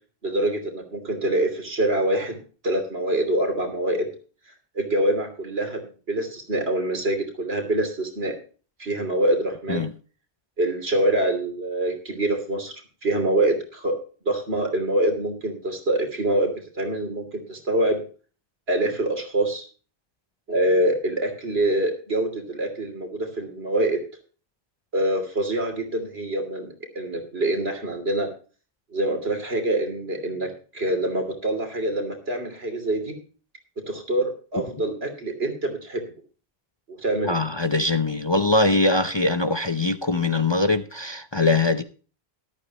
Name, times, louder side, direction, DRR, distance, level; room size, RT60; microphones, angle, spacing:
voice 1, 0.2-2.4 2.6-4.1 4.7-5.8 6.1-8.3 8.8-9.8 10.6-12.7 13.0-13.9 14.2-18.0 18.7-19.6 20.5-24.0 24.9-28.3 28.9-33.2 33.9-36.0 37.0-37.4, right 1 dB, 70° right, 5 dB, 3.2 m, -25 dB
voice 2, 37.2-41.8, left 2 dB, 30° left, 9 dB, 0.7 m, -22 dB
13.5 x 12.5 x 3.0 m, 0.38 s
omnidirectional pair, 1.1 m